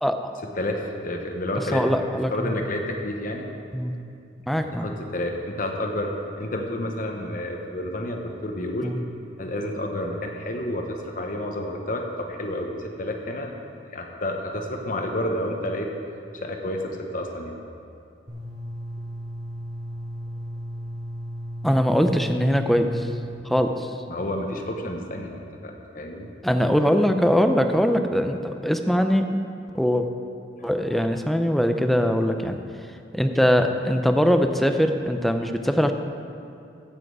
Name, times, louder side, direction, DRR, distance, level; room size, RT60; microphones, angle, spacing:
voice 1, 0.0-0.4 1.7-2.6 3.7-3.9 4.5-4.9 8.8-9.0 21.6-23.1 23.4-24.0 26.4-29.2 29.7-30.1 30.6-32.6 33.1-35.9, equal, ahead, 6 dB, 0.5 m, -22 dB
voice 2, 0.6-1.9 2.3-3.5 4.7-6.1 6.4-8.9 9.4-13.5 13.9-15.9 16.3-17.6 24.1-26.3 30.6-31.0, left 1 dB, 50° left, 2 dB, 1.1 m, -30 dB
sound 1, 18.3-23.3, equal, 50° right, 2.9 m, -35 dB
15.5 x 7.6 x 4.8 m, 2.6 s
head